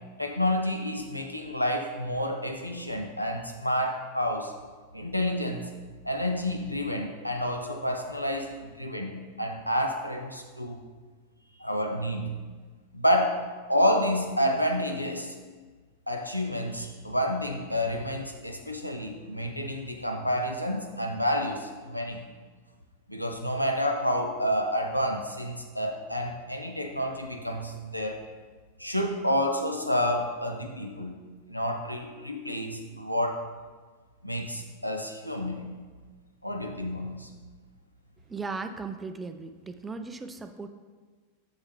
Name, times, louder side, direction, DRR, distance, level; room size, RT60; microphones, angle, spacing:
voice 1, 0.2-4.5 4.9-5.7 6.0-10.8 11.6-12.4 12.9-13.4 13.7-15.4 16.1-22.2 23.1-28.2 28.8-31.2 31.5-33.4 34.2-35.8 36.4-37.3, equal, 90° left, 3 dB, 0.6 m, -29 dB
voice 2, 38.3-40.7, right 4 dB, 15° right, 8 dB, 0.4 m, -37 dB
6.4 x 5.5 x 3.2 m, 1.4 s
figure-of-eight pair, 90°, 0 cm